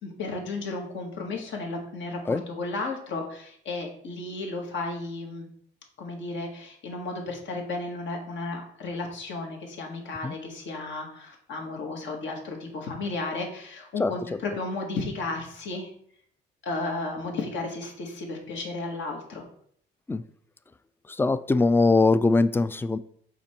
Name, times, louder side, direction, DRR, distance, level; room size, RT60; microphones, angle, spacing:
voice 1, 0.0-5.5 6.0-15.9 16.6-19.4, left 3 dB, 70° left, 1 dB, 1.8 m, -33 dB
voice 2, 21.2-23.0, left 3 dB, 10° left, 14 dB, 0.3 m, -21 dB
5.8 x 4.3 x 4.4 m, 0.63 s
cardioid pair, 90°, 20 cm